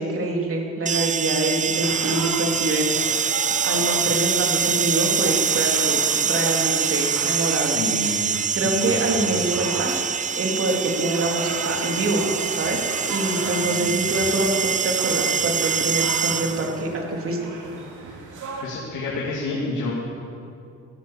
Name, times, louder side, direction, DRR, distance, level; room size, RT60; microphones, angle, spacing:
voice 1, 0.0-7.8 8.2-9.9 10.3-17.4, right 2 dB, 45° right, 0 dB, 3.1 m, -25 dB
sound 1, 0.9-16.8, right 7 dB, 25° right, 0.4 m, -24 dB
sound 2, 1.7-18.6, right 4 dB, 80° right, 2.4 m, -36 dB
voice 2, 7.7-9.3 13.3-13.8 18.6-19.9, left 2 dB, 80° left, -4 dB, 2.8 m, -29 dB
15.5 x 11.5 x 7.5 m, 2.6 s
cardioid pair, 90°, 30 cm